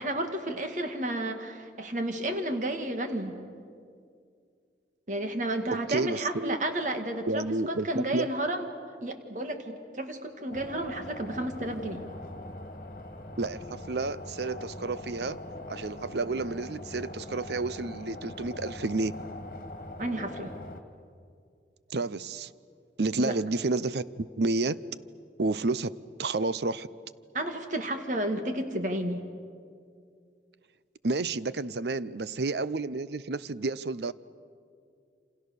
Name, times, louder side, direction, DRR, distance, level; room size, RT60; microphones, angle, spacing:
voice 1, 0.0-3.4 5.1-8.7 9.0-12.0 20.0-20.5 23.2-23.3 27.3-29.2, right 1 dB, 45° right, 6 dB, 2.0 m, -32 dB
voice 2, 5.9-6.6 7.3-8.3 13.4-15.4 15.7-19.1 21.9-22.5 23.0-24.8 25.4-25.9 26.2-26.9 31.0-34.1, right 3 dB, 70° right, 16 dB, 0.7 m, -30 dB
sound 1, 10.5-20.8, left 1 dB, 45° left, 2.0 m, -42 dB
28.0 x 27.0 x 6.8 m, 2.3 s
head